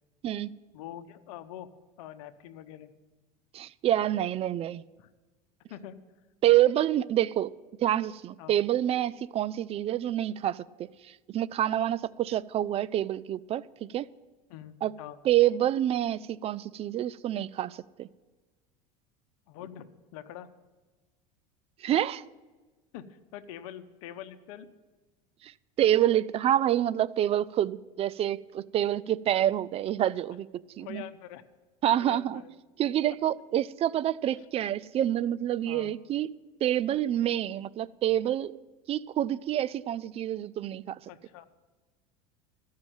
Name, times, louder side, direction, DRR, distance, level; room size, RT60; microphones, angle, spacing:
voice 1, 0.7-1.7 2.0-2.9 5.0-5.1 5.7-6.0 8.4-8.5 14.5-15.2 19.5-20.5 22.9-24.8 30.8-31.4 31.9-32.5 34.4-34.5 35.6-35.9 41.1-41.4, left 11 dB, 75° left, 11 dB, 0.9 m, -44 dB
voice 2, 3.5-4.8 6.4-7.5 7.8-10.9 11.3-14.1 14.8-14.9 15.2-18.1 21.8-22.2 25.4-25.5 25.8-30.5 30.8-31.0 31.8-32.4 32.8-36.3 36.6-38.6 38.9-41.0, right 12 dB, 35° right, 20 dB, 0.3 m, -27 dB
13.5 x 5.7 x 8.9 m, 1.3 s
supercardioid pair, 105°, 19 cm